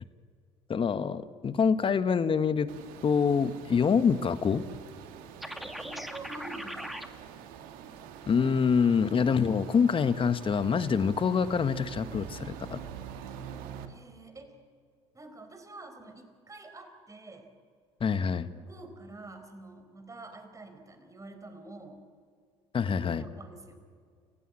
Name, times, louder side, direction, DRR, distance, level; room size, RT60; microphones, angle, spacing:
voice 1, 0.7-2.7 3.0-4.6 8.3-12.8 18.0-18.5 22.7-23.2, left 6 dB, 35° left, 12 dB, 1.3 m, -26 dB
sound 1, 2.7-13.9, right 8 dB, 70° right, 2.0 m, -45 dB
sound 2, 5.4-7.1, equal, ahead, 2.1 m, -39 dB
voice 2, 5.5-7.0 13.9-14.6 15.1-17.5 18.5-22.0 22.8-23.8, right 2 dB, 20° right, 7 dB, 4.5 m, -47 dB
29.5 x 16.0 x 8.8 m, 2.1 s
hypercardioid pair, 65°, 15 cm